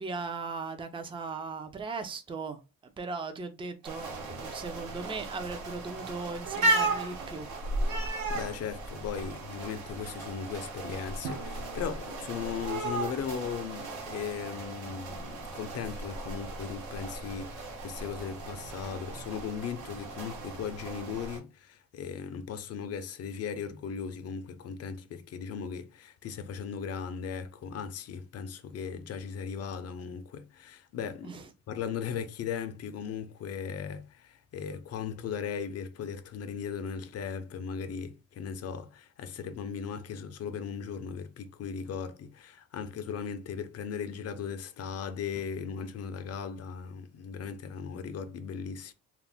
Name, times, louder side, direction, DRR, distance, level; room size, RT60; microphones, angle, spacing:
voice 1, 0.0-2.6 3.0-7.5 31.2-31.4, right 4 dB, 15° right, 0.4 m, -38 dB
sound 1, 3.8-21.4, right 2 dB, 80° right, 1.1 m, -35 dB
voice 2, 8.1-31.4 31.7-48.9, left 7 dB, 55° left, 0.5 m, -37 dB
Drum, 11.2-13.5, right 3 dB, 55° right, 0.8 m, -44 dB
2.4 x 2.0 x 3.4 m
cardioid pair, 90°, 30 cm